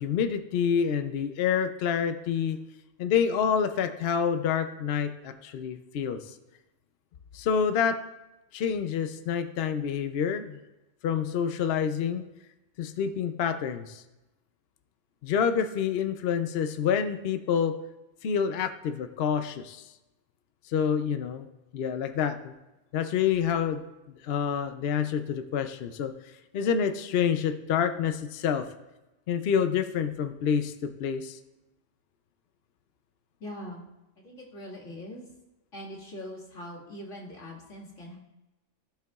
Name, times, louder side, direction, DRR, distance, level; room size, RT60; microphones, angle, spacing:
voice 1, 0.0-2.6 3.0-6.4 7.3-8.0 8.5-10.6 11.0-12.2 12.8-14.0 15.2-17.7 18.2-19.9 20.6-21.5 21.7-22.5 22.9-28.7 29.3-31.4, left 7 dB, 60° left, 8 dB, 0.8 m, -28 dB
voice 2, 33.4-33.9 34.2-35.3 35.7-38.2, left 1 dB, 90° left, -4 dB, 2.3 m, -42 dB
15.0 x 6.7 x 2.3 m, 1.0 s
omnidirectional pair, 1.3 m